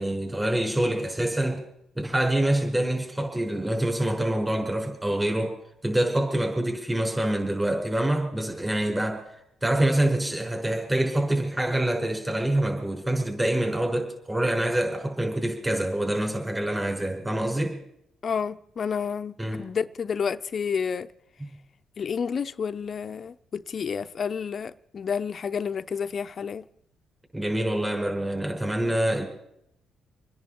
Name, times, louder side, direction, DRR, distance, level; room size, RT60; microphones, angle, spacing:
voice 1, 0.0-1.6 2.0-5.5 5.8-9.2 9.6-17.8 19.4-19.6 21.4-21.5 27.3-29.2, right 1 dB, 15° right, 5.8 m, -26 dB
voice 2, 18.2-21.1 22.0-26.6, left 6 dB, 50° left, 0.6 m, -30 dB
27.5 x 10.5 x 4.5 m
cardioid pair, 90°, 0 cm